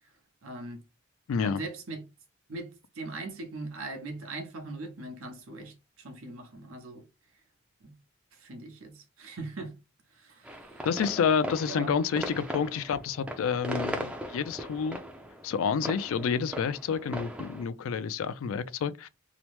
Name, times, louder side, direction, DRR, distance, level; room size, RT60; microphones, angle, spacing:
voice 1, 0.4-0.8 1.4-2.0 2.5-7.0 7.8-7.9 8.4-9.8 10.2-10.9 11.7-12.0 16.2-16.3, right 2 dB, 80° right, 0.9 m, -40 dB
voice 2, 1.3-1.6 10.9-15.0 15.4-19.1, left 6 dB, 75° left, 0.3 m, -29 dB
sound 1, 10.4-17.6, equal, 5° right, 0.4 m, -38 dB
2.9 x 2.0 x 3.1 m
head